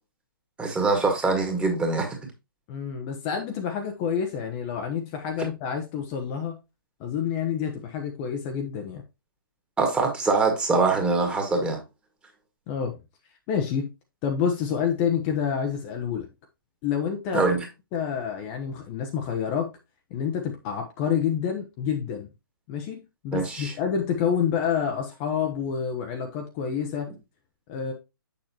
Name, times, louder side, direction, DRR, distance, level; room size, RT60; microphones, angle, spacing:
voice 1, 0.6-2.2 9.8-11.8 17.3-17.7 23.3-23.7, right 3 dB, 10° right, 1.9 m, -23 dB
voice 2, 2.7-6.6 7.0-9.0 12.7-13.0 13.5-13.9 14.2-16.3 16.8-17.5 17.9-19.7 20.1-22.3 22.7-23.0 23.2-27.1 27.7-27.9, left 7 dB, 30° left, 1.0 m, -28 dB
7.2 x 6.8 x 3.0 m
figure-of-eight pair, 135°, 12 cm